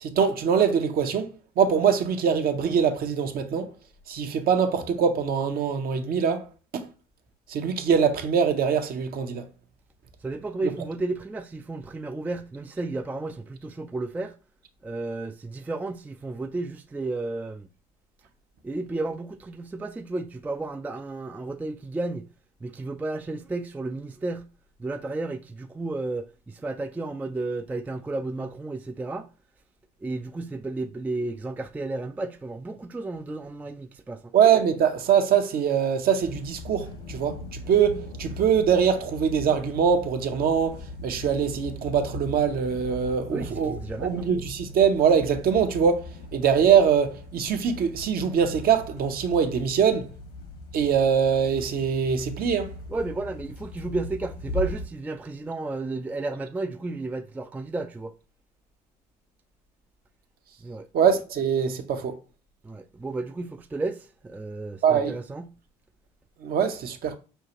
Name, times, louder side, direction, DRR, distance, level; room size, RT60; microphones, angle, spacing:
voice 1, 0.0-3.7 4.1-6.4 6.7-6.9 7.5-9.4 34.3-50.1 50.7-52.7 60.9-62.2 64.8-65.1 66.4-67.2, right 7 dB, 50° right, 0.7 m, -23 dB
voice 2, 10.2-14.3 14.8-17.7 18.6-22.3 22.6-24.5 24.8-29.3 30.0-34.3 43.3-44.3 52.9-58.1 60.6-60.9 62.6-65.5, right 2 dB, 10° right, 0.3 m, -32 dB
sound 1, 36.2-54.9, left 1 dB, 75° left, 1.3 m, -39 dB
5.4 x 2.4 x 3.0 m
hypercardioid pair, 65°, 20 cm